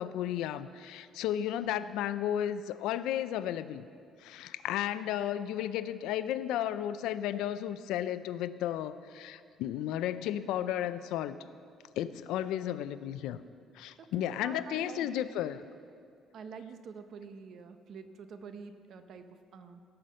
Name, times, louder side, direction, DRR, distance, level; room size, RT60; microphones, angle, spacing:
voice 1, 0.0-3.8 4.2-11.4 12.0-13.4 13.7-15.6, left 11 dB, 90° left, 13 dB, 0.5 m, -33 dB
voice 2, 1.5-1.9 14.2-15.2 16.3-19.8, right 5 dB, 55° right, 8 dB, 0.9 m, -47 dB
17.5 x 5.8 x 7.6 m, 2.3 s
cardioid pair, 140°, 0 cm